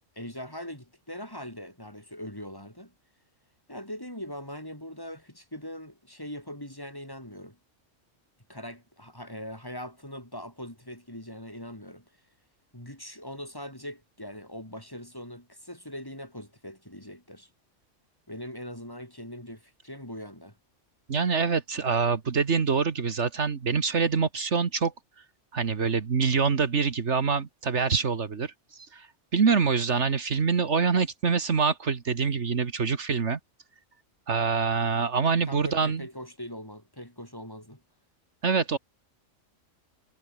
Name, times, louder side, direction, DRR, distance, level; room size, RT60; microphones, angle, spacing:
voice 1, 0.1-2.9 3.7-7.6 8.5-12.0 12.7-17.5 18.3-20.5 35.2-37.8, equal, 15° left, 4.8 m, -41 dB
voice 2, 21.1-24.9 25.5-29.1 29.3-33.4 34.3-36.0 38.4-38.8, right 5 dB, 65° right, 1.8 m, -25 dB
omnidirectional pair, 1.3 m